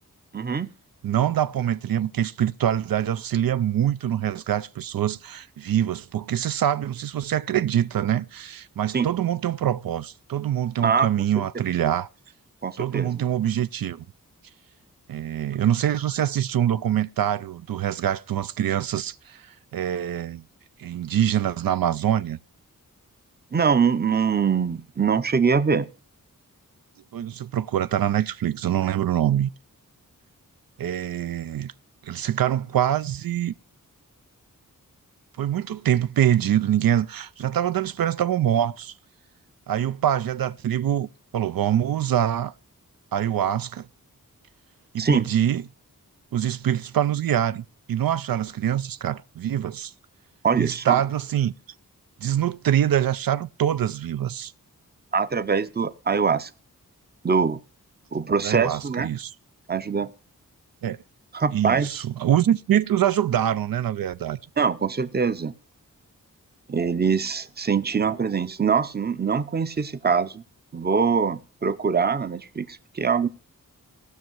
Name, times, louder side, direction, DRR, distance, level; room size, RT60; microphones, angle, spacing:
voice 1, 0.3-0.7 8.9-9.1 10.8-11.3 12.6-13.2 23.5-25.9 45.0-45.2 50.4-51.0 55.1-56.5 57.2-57.6 58.1-59.1 59.7-60.1 61.3-62.0 64.6-65.5 66.7-70.4 70.7-73.3, right 5 dB, 30° right, 0.6 m, -23 dB
voice 2, 1.0-12.1 12.8-14.0 15.1-20.4 20.8-22.4 27.1-29.5 30.8-31.7 32.0-33.5 35.4-38.9 39.7-42.5 43.1-43.9 44.9-45.6 46.3-49.9 50.6-51.5 52.2-54.5 58.4-59.3 60.8-61.0 61.5-64.4, right 10 dB, 85° right, 0.5 m, -24 dB
17.0 x 6.4 x 4.5 m
wide cardioid pair, 95°, 34 cm